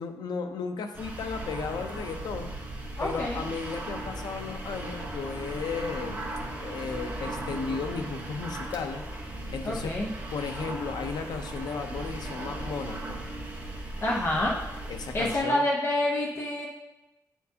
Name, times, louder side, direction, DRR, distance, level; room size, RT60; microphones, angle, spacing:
voice 1, 0.0-2.5 3.0-6.2 6.5-10.0 10.3-13.2 14.9-15.6, left 5 dB, 90° left, 6 dB, 0.6 m, -35 dB
sound 1, 0.9-15.4, right 1 dB, 25° right, 1.0 m, -37 dB
voice 2, 3.0-3.4 9.6-10.1 14.0-14.6 15.1-16.7, left 1 dB, 35° left, -3 dB, 0.7 m, -27 dB
9.1 x 4.5 x 2.8 m, 0.98 s
wide cardioid pair, 170°, 7 cm